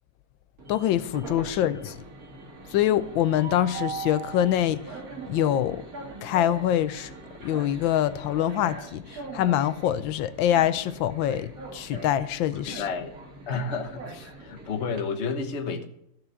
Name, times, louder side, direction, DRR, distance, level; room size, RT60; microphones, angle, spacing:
Train, 0.6-15.0, right 3 dB, 50° right, 2.5 m, -41 dB
voice 1, 0.7-1.9 2.7-4.8 5.3-5.8 6.2-7.1 7.4-12.8, left 11 dB, 85° left, 1.4 m, -25 dB
voice 2, 1.4-1.8 12.6-13.1 13.5-14.0 14.4-15.8, left 5 dB, 40° left, 1.3 m, -31 dB
14.5 x 6.2 x 6.7 m
omnidirectional pair, 2.0 m